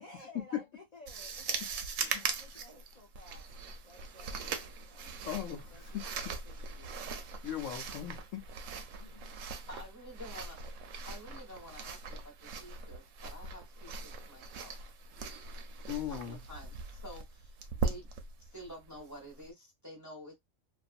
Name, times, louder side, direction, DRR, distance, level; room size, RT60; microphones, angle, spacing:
voice 1, 0.0-7.1 8.9-9.4, left 2 dB, 40° left, 0.6 m, -56 dB
sound 1, 1.1-19.5, right 5 dB, 70° right, 0.9 m, -40 dB
voice 2, 5.2-6.0 7.4-8.4 15.9-16.4, left 10 dB, 70° left, 1.0 m, -39 dB
voice 3, 9.7-10.6 11.1-14.8 16.1-17.6 17.8-18.1 18.4-20.3, equal, 15° right, 0.8 m, -49 dB
2.5 x 2.5 x 2.4 m
omnidirectional pair, 1.4 m